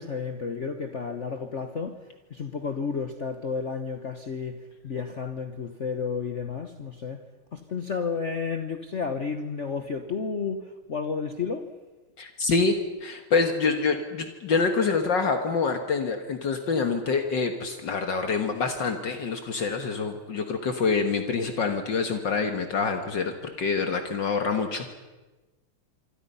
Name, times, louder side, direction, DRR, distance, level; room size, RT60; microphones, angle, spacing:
voice 1, 0.0-7.2 7.5-11.7, left 5 dB, 40° left, 7 dB, 1.3 m, -32 dB
voice 2, 12.2-24.9, left 4 dB, 60° left, 6 dB, 2.1 m, -26 dB
27.0 x 24.5 x 5.6 m, 1.2 s
omnidirectional pair, 2.3 m